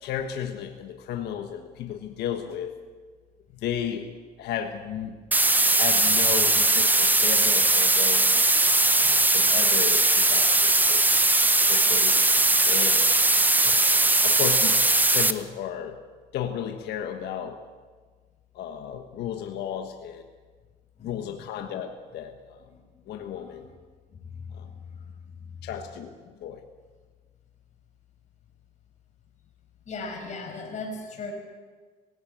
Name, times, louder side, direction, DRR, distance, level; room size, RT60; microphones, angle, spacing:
voice 1, 0.0-2.8 3.5-4.1 4.4-5.1 5.7-8.4 8.9-11.1 11.7-12.2 12.6-13.1 13.6-13.8 14.2-14.8 15.1-16.0 16.3-17.6 18.5-20.3 21.0-22.6 23.1-23.7 24.5-24.7 25.6-26.1 26.4-26.6, left 9 dB, 75° left, 5 dB, 1.4 m, -34 dB
sound 1, 5.3-15.3, right 2 dB, 10° right, 1.0 m, -20 dB
voice 2, 21.0-21.4 22.7-22.8 23.0-23.7 24.2-24.8 29.9-31.3, left 3 dB, 45° left, 1 dB, 5.6 m, -38 dB
18.0 x 15.5 x 9.2 m, 1.5 s
cardioid pair, 110°, 17 cm